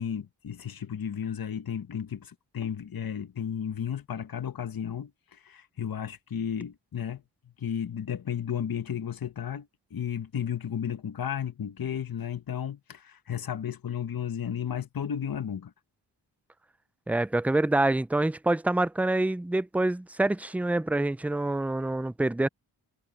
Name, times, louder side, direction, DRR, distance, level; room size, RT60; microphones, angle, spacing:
voice 1, 0.0-7.2 7.6-15.7, left 8 dB, 50° left, 1.3 m, -33 dB
voice 2, 17.1-22.5, right 2 dB, 5° right, 0.4 m, -26 dB
cardioid pair, 70°, 44 cm